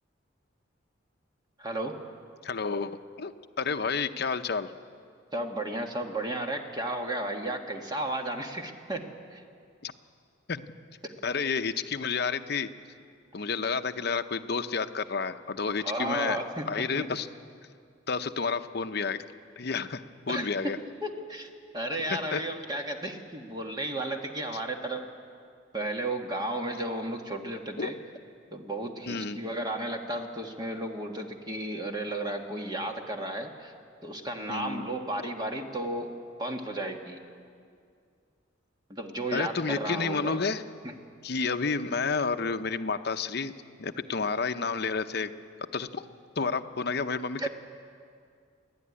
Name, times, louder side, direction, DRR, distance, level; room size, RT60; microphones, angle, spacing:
voice 1, 1.6-2.0 5.3-9.4 15.8-16.7 17.0-17.1 20.3-20.5 21.0-25.0 25.7-28.0 28.5-33.7 34.0-36.1 36.4-37.2 38.9-40.4 40.8-40.9 47.4-47.5, right 1 dB, 20° right, 3 dB, 1.6 m, -33 dB
voice 2, 2.4-2.9 3.2-4.7 9.8-9.9 10.5-10.6 11.2-12.7 13.3-16.4 16.7-17.3 18.1-19.2 19.6-20.8 22.1-22.4 27.8-27.9 29.1-29.4 34.5-34.9 35.2-35.3 39.3-40.6 41.2-43.5 43.8-45.3 45.7-46.1 46.4-47.5, left 5 dB, 55° left, 8 dB, 0.8 m, -30 dB
29.5 x 11.0 x 9.8 m, 2.3 s
head